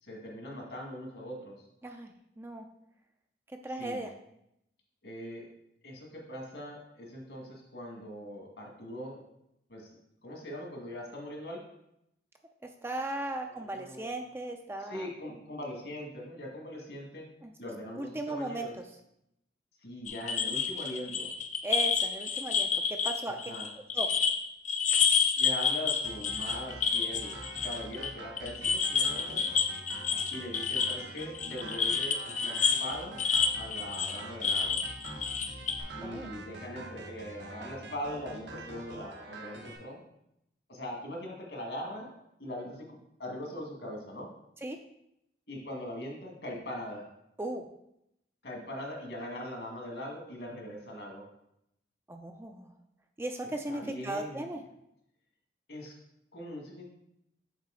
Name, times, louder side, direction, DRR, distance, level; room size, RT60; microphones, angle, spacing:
voice 1, 0.0-1.5 3.8-4.0 5.0-5.5 5.8-9.2 9.7-9.9 10.2-11.6 13.4-14.2 14.8-17.3 17.6-18.7 19.8-21.3 23.3-23.7 25.3-29.5 30.3-33.2 33.6-34.8 35.9-40.0 40.7-42.1 42.4-44.3 45.5-47.0 48.4-51.3 53.4-54.4 55.7-55.9 56.3-56.8, left 1 dB, 70° left, -1 dB, 1.8 m, -41 dB
voice 2, 3.6-4.1 12.8-15.1 17.4-17.5 18.0-18.7 21.6-23.4 23.9-24.1 36.0-36.3 44.6-44.8 47.4-47.6 52.1-52.7 53.2-54.6, right 1 dB, 15° right, 5 dB, 0.3 m, -36 dB
sound 1, 20.1-24.4 24.6-28.1 28.4-35.8, left 6 dB, 40° left, 0.5 m, -29 dB
sound 2, 26.0-39.8, right 2 dB, 80° right, 1.0 m, -45 dB
7.3 x 3.9 x 3.7 m, 0.80 s
head